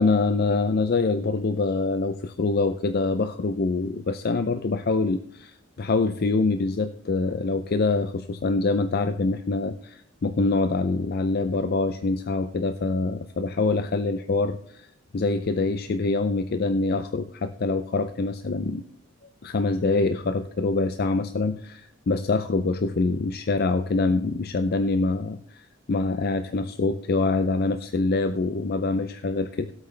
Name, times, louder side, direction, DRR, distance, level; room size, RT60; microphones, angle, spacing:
voice 1, 0.0-14.9 15.1-18.9 19.4-29.7, left 3 dB, 50° left, 10 dB, 0.5 m, -25 dB
16.5 x 8.4 x 3.3 m, 0.66 s
head